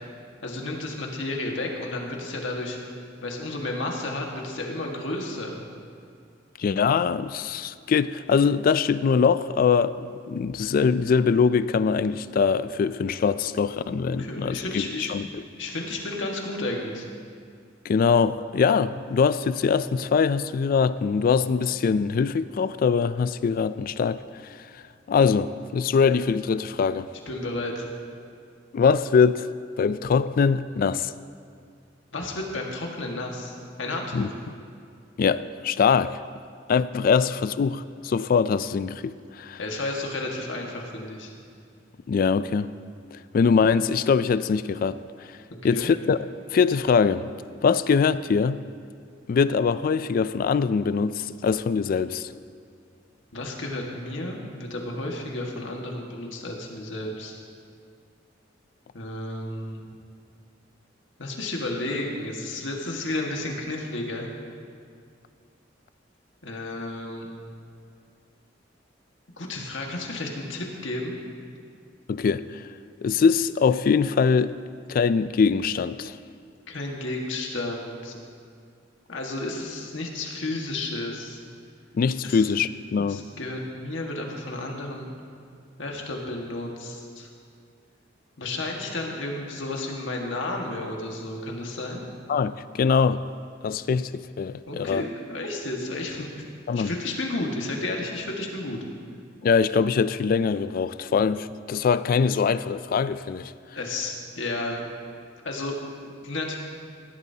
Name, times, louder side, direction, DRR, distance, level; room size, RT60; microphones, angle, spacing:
voice 1, 0.4-2.8 3.2-5.6 14.0-15.2 15.6-17.1 27.3-27.9 32.1-34.3 39.6-41.3 45.7-45.9 53.3-57.4 58.9-59.9 61.2-64.3 66.4-67.3 69.4-71.2 76.7-78.2 79.1-81.4 82.2-82.5 83.0-85.1 85.8-87.3 88.4-92.0 94.7-96.5 96.7-98.8 103.7-104.8 105.4-106.6, left 2 dB, 80° left, 1.7 m, -32 dB
voice 2, 6.6-14.8 15.1-15.4 17.9-24.2 25.1-27.1 28.7-29.5 29.8-31.1 34.1-34.3 35.2-36.2 36.7-39.6 42.1-42.7 43.1-45.0 45.6-47.3 47.6-48.6 49.3-52.3 72.1-72.7 73.0-74.5 74.9-76.1 81.9-83.2 92.3-93.2 93.6-95.0 96.7-96.9 99.4-103.5, left 5 dB, 50° left, 0.3 m, -23 dB
17.5 x 12.0 x 2.8 m
head